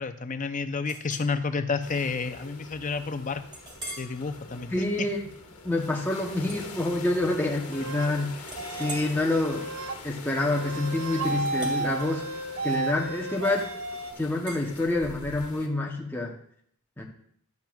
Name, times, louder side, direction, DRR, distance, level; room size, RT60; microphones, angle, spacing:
voice 1, 0.0-3.4 4.0-4.7, left 4 dB, 35° left, 9 dB, 0.5 m, -30 dB
Chink clink, 0.9-1.3 1.9-2.0 2.5-2.6 3.5-4.2 4.7-5.0 6.4-7.4 7.7-8.1 8.4-13.5 14.5-14.7, right 1 dB, 20° right, 2.0 m, -44 dB
sound 1, 1.8-15.7, left 3 dB, 80° left, 1.4 m, -44 dB
voice 2, 4.7-5.2 5.6-9.7 10.0-12.3 12.6-13.7 14.2-16.4 17.0-17.1, left 2 dB, 10° left, -1 dB, 0.8 m, -27 dB
sound 2, 7.7-8.1 8.6-9.1 9.4-10.0 10.5-14.1, right 3 dB, 60° right, 0.7 m, -33 dB
12.0 x 8.0 x 2.4 m, 0.66 s
head